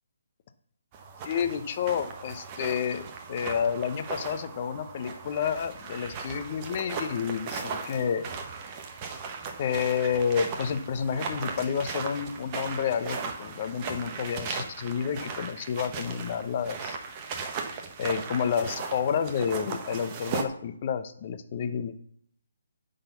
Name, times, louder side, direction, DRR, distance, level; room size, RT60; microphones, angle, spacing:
sound 1, 0.9-20.4, right 5 dB, 25° right, 0.9 m, -37 dB
voice 1, 1.2-8.3 9.6-17.0 18.0-21.9, left 7 dB, 35° left, 9 dB, 0.8 m, -30 dB
10.0 x 4.0 x 6.7 m, 0.67 s
hypercardioid pair, 165°, 0 cm